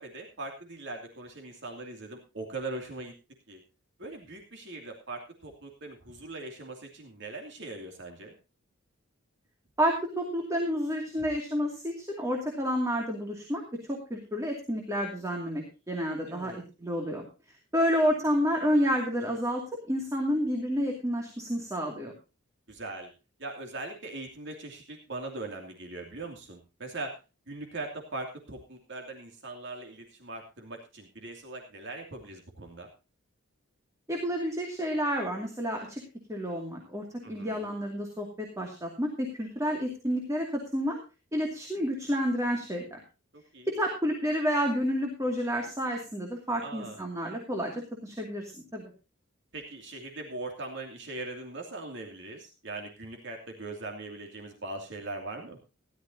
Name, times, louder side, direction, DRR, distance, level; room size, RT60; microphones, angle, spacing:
voice 1, 0.0-3.1 3.5-3.6 4.0-8.4 16.3-16.6 22.7-23.1 23.4-27.2 27.5-32.9 37.2-37.7 43.3-43.7 46.6-47.0 49.5-55.6, right 2 dB, 65° right, 2 dB, 2.6 m, -40 dB
voice 2, 9.8-13.6 13.9-17.2 17.7-19.6 19.9-22.1 34.1-36.0 36.3-41.0 41.3-43.0 43.7-48.9, equal, 15° right, 1 dB, 2.5 m, -30 dB
17.0 x 12.0 x 2.8 m, 0.30 s
head